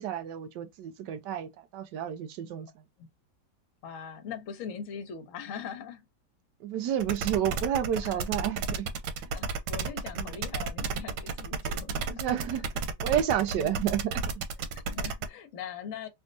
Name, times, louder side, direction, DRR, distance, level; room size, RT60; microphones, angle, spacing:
voice 1, 0.0-2.7 6.6-8.9 9.2-9.3 10.2-10.4 12.1-12.7 13.0-14.1, right 10 dB, 70° right, 1.1 m, -30 dB
voice 2, 3.8-6.0 8.0-8.3 9.3-12.6 13.6-13.9 14.7-16.1, left 7 dB, 55° left, 0.9 m, -41 dB
sound 1, 7.0-15.3, right 4 dB, 90° right, 1.4 m, -32 dB
3.5 x 2.6 x 2.6 m
omnidirectional pair, 2.1 m